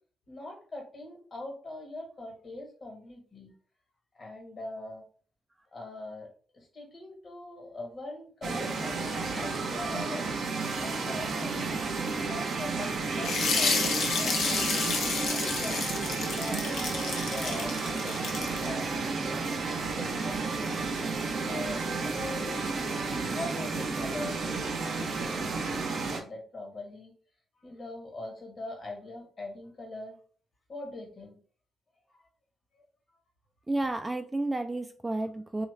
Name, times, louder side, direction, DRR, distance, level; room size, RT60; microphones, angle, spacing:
voice 1, 0.3-3.5 4.1-5.0 5.7-6.3 6.5-10.3 10.8-11.8 12.2-14.8 15.3-15.9 16.3-19.0 20.0-20.9 21.4-22.7 23.3-27.1 27.6-30.2 30.7-31.4 32.1-32.2 32.7-32.8, left 2 dB, 45° left, 1 dB, 1.3 m, -42 dB
sound 1, 8.4-26.2, right 4 dB, 60° right, 0.7 m, -32 dB
sound 2, 13.2-18.7, left 4 dB, 70° left, 0.6 m, -30 dB
voice 2, 33.7-35.7, right 2 dB, 20° right, 5 dB, 0.4 m, -31 dB
3.1 x 2.4 x 3.2 m, 0.43 s
hypercardioid pair, 45°, 0 cm